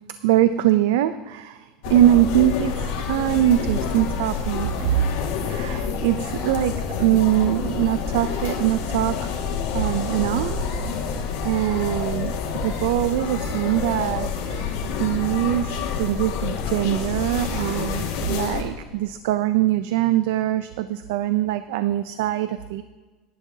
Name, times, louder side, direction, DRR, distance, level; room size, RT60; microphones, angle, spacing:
voice 1, 0.2-9.4 9.7-10.7 11.4-12.3 12.6-14.7 15.0-22.8, right 13 dB, 85° right, 12 dB, 0.4 m, -23 dB
sound 1, 1.8-18.6, left 6 dB, 75° left, 1.9 m, -28 dB
17.0 x 11.0 x 2.8 m, 1.3 s
cardioid pair, 160°, 0 cm